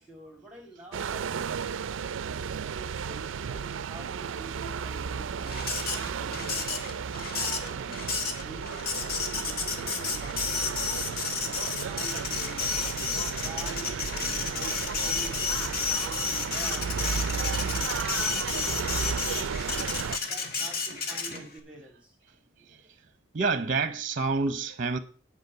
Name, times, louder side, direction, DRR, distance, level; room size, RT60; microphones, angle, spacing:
voice 1, 0.0-1.5 2.2-7.9 8.4-11.0 11.4-12.7 13.2-18.1 18.6-19.7 20.2-22.2, right 1 dB, 5° right, 2.0 m, -48 dB
sound 1, 0.9-20.2, right 6 dB, 75° right, 0.4 m, -34 dB
Printer, 5.5-21.6, left 5 dB, 50° left, 1.6 m, -32 dB
voice 2, 23.3-25.0, right 4 dB, 45° right, 0.8 m, -28 dB
9.5 x 5.2 x 8.1 m
head